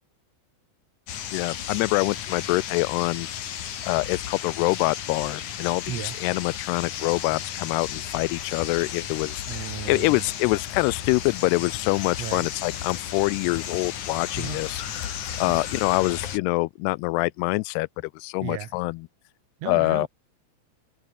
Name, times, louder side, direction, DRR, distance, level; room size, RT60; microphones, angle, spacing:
sound 1, 1.1-16.4, left 9 dB, 55° left, 2.9 m, -34 dB
voice 1, 1.3-3.3 3.8-9.4 9.9-14.8 15.1-19.1 19.7-20.1, left 24 dB, 80° left, 2.5 m, -25 dB
voice 2, 9.5-10.3 12.2-12.5 14.4-14.7 15.5-15.6 18.4-18.7 19.6-20.1, right 12 dB, 90° right, 1.4 m, -35 dB
omnidirectional pair, 5.0 m